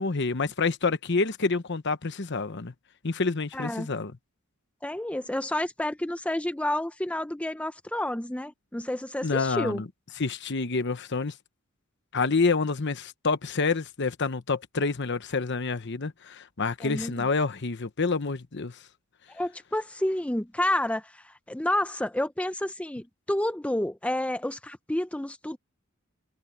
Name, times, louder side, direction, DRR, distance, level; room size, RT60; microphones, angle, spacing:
voice 1, 0.0-2.7 3.0-4.1 9.2-9.9 10.2-11.3 12.1-18.8, left 4 dB, 55° left, 1.0 m, -28 dB
voice 2, 3.5-3.9 4.8-9.8 16.8-17.3 19.3-25.6, left 1 dB, 5° left, 0.5 m, -30 dB
head